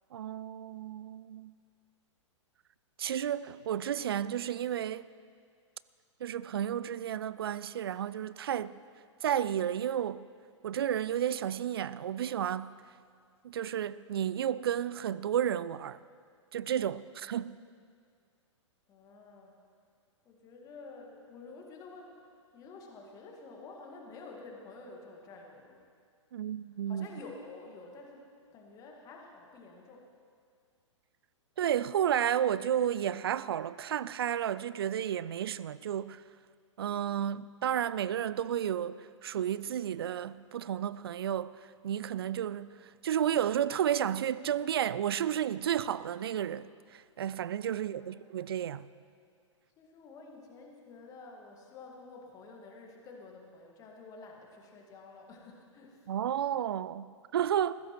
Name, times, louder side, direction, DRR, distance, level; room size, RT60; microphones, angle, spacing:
voice 1, 0.1-1.5 3.0-5.1 6.2-8.8 9.2-10.3 10.6-12.8 13.4-16.0 16.5-17.6 26.3-27.1 31.6-36.2 36.8-41.6 41.8-42.7 43.0-48.9 56.1-57.8, right 10 dB, 50° right, 0.4 m, -32 dB
voice 2, 18.9-19.6 20.2-25.8 26.9-30.1 37.7-37.9 47.8-48.3 49.8-56.1, left 3 dB, 20° left, 1.8 m, -50 dB
19.5 x 15.5 x 3.1 m
figure-of-eight pair, 110°, 16 cm